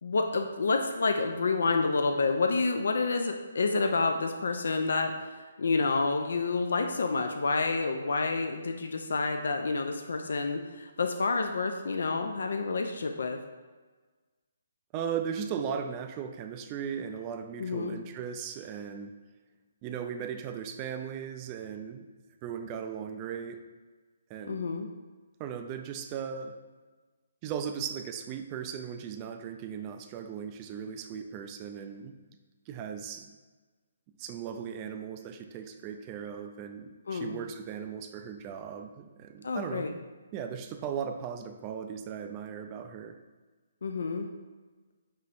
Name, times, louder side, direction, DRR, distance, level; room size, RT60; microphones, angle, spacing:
voice 1, 0.0-13.4 17.6-17.9 24.5-24.9 37.1-37.4 39.4-39.9 43.8-44.3, left 3 dB, 70° left, 5 dB, 0.3 m, -29 dB
voice 2, 14.9-19.1 19.8-22.1 22.4-23.6 24.3-24.7 25.4-26.6 27.4-32.2 32.7-33.3 34.2-39.9 40.3-43.2, right 7 dB, 30° right, 6 dB, 0.3 m, -37 dB
5.4 x 3.1 x 2.5 m, 1.3 s
figure-of-eight pair, 140°, 0 cm